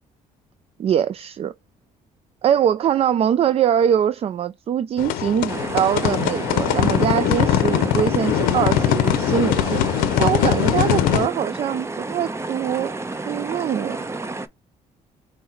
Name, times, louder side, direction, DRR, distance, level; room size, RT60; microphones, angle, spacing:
voice 1, 0.8-1.5 2.4-9.8 10.2-12.9 13.2-14.0, right 9 dB, 45° right, 0.4 m, -22 dB
sound 1, 5.0-11.3, left 11 dB, 85° left, 0.6 m, -21 dB
sound 2, 5.5-14.5, right 2 dB, 20° right, 0.8 m, -31 dB
5.4 x 2.2 x 4.3 m
cardioid pair, 85°, 15 cm